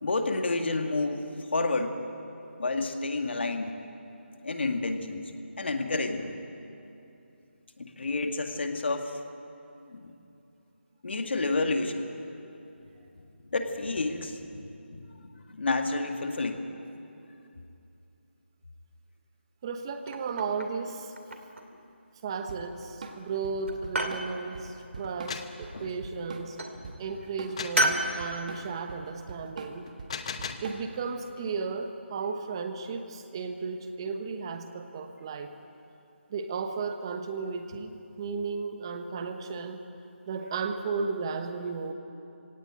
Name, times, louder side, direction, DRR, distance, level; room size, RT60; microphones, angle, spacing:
voice 1, 0.0-1.2 1.5-2.0 2.6-3.7 4.4-5.3 5.6-6.4 7.8-9.2 9.9-10.1 11.0-12.1 13.5-14.6 14.9-16.6 25.7-25.9 30.3-30.6, left 3 dB, 60° left, 5 dB, 2.0 m, -30 dB
voice 2, 19.6-21.1 22.2-26.6 27.0-29.9 30.6-35.5 36.3-39.8 40.3-41.9, right 5 dB, 25° right, 7 dB, 1.1 m, -34 dB
sound 1, 20.0-20.8 21.2-21.8 22.6-23.1 23.4-24.3 25.7-26.2 26.6-26.8 27.8-28.1, right 1 dB, 85° right, 2.5 m, -30 dB
Drum kit / Drum, 22.5-31.1, right 3 dB, 40° right, 1.7 m, -43 dB
sound 2, 25.0-25.6 27.6-27.9 29.9-30.7, left 6 dB, 30° left, 0.9 m, -37 dB
20.5 x 17.5 x 8.9 m, 2.8 s
figure-of-eight pair, 170°, 7 cm